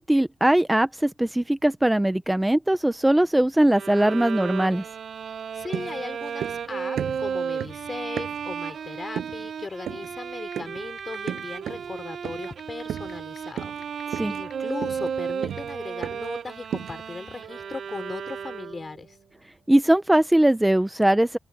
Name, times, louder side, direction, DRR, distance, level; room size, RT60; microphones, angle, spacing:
voice 1, 0.0-4.8 14.1-14.3 19.7-21.4, right 1 dB, 10° right, 0.8 m, -20 dB
Bowed string instrument, 3.7-19.0, right 7 dB, 60° right, 1.0 m, -34 dB
voice 2, 5.5-19.2, left 3 dB, 30° left, 3.6 m, -37 dB
sound 1, 5.7-6.7 7.0-8.6 9.2-9.5 9.9-10.1 10.6-10.9 11.3-11.9 12.2-12.6 12.9-13.3 13.6-13.9 14.1-16.4 16.7-17.1, right 10 dB, 90° right, 7.5 m, -35 dB
sound 2, 10.5-10.6 11.0-11.4 11.7-11.8 12.4-14.2 14.5-14.6 15.4-15.6, left 9 dB, 85° left, 2.9 m, -45 dB
cardioid pair, 115°, 0 cm